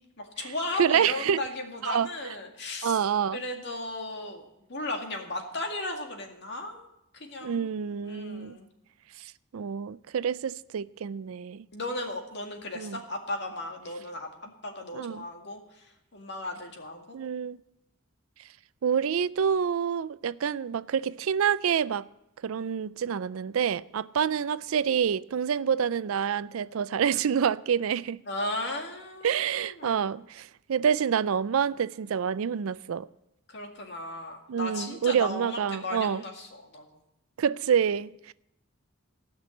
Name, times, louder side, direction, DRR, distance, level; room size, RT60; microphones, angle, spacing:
voice 1, 0.0-3.0 3.3-6.9 7.1-7.6 8.0-8.7 11.7-15.8 16.1-17.2 28.3-30.1 33.5-36.9, left 2 dB, 55° left, 2.0 m, -36 dB
voice 2, 0.8-1.4 1.8-2.1 2.8-3.4 7.4-8.6 9.5-11.7 12.8-13.0 14.9-15.3 17.1-17.6 18.8-22.1 22.4-28.2 29.2-33.1 34.5-36.2 37.4-38.3, right 7 dB, 75° right, 0.4 m, -27 dB
16.5 x 6.1 x 8.4 m
head